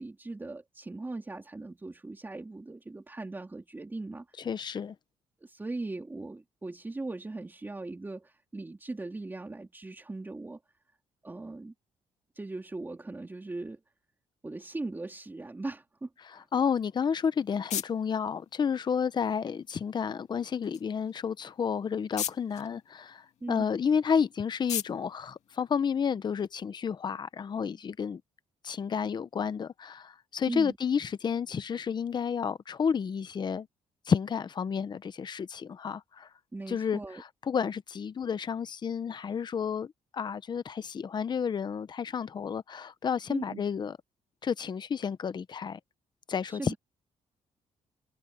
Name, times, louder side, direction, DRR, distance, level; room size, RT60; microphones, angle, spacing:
voice 1, 0.0-4.5 5.4-10.6 11.2-11.7 12.3-13.8 14.4-16.5 23.4-23.7 30.5-30.8 36.5-37.2 43.3-43.6 46.4-46.8, right 2 dB, 15° right, 3.8 m, -39 dB
voice 2, 4.4-4.9 16.5-28.2 28.6-33.7 34.1-36.3 36.7-44.0 44.4-45.8 46.3-46.7, left 6 dB, 35° left, 0.8 m, -31 dB
sound 1, 16.9-26.3, left 9 dB, 65° left, 2.1 m, -42 dB
cardioid pair, 120°, 13 cm